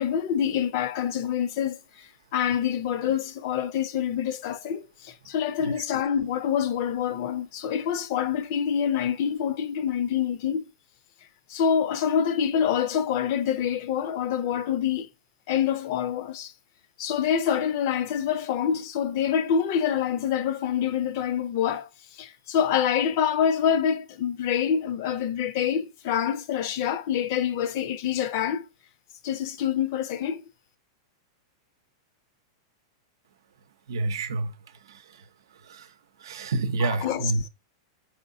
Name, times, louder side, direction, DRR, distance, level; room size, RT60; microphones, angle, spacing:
voice 1, 0.0-1.8 2.3-10.7 11.5-15.1 15.5-16.5 17.0-21.9 22.2-28.7 29.2-30.4 36.8-37.5, left 8 dB, 50° left, 0.5 m, -26 dB
voice 2, 33.9-34.5 34.9-35.0 35.6-35.9 36.2-37.4, right 3 dB, 90° right, 0.6 m, -28 dB
4.6 x 4.3 x 2.6 m
supercardioid pair, 155°, 2 cm